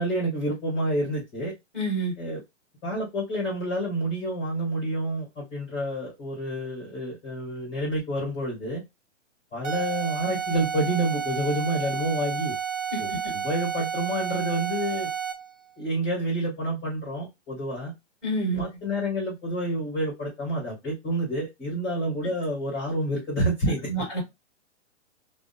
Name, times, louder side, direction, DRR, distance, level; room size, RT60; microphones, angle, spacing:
voice 1, 0.0-1.5 2.2-2.4 2.8-8.8 9.5-12.5 13.0-15.1 15.8-17.9 18.5-23.9, right 1 dB, 15° left, 1.0 m, -28 dB
voice 2, 1.7-2.1 12.9-13.0 18.2-18.6 23.9-24.2, right 2 dB, ahead, 1.3 m, -27 dB
sound 1, 9.6-15.5, right 8 dB, 80° right, 0.7 m, -31 dB
2.7 x 2.0 x 2.5 m
hypercardioid pair, 160°, 37 cm